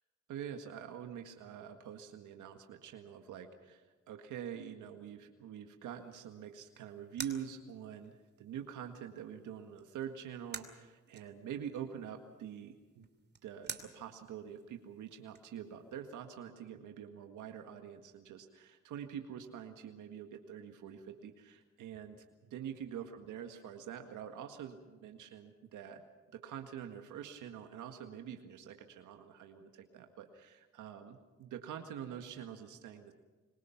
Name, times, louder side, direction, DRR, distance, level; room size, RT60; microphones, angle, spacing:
voice 1, 0.3-13.1 13.4-22.2 22.5-26.0 26.3-33.1, right 9 dB, 80° right, 5 dB, 1.8 m, -46 dB
sound 1, 5.9-15.9, right 5 dB, 35° right, 2.7 m, -52 dB
25.5 x 22.5 x 5.9 m, 1.3 s
cardioid pair, 90°, 30 cm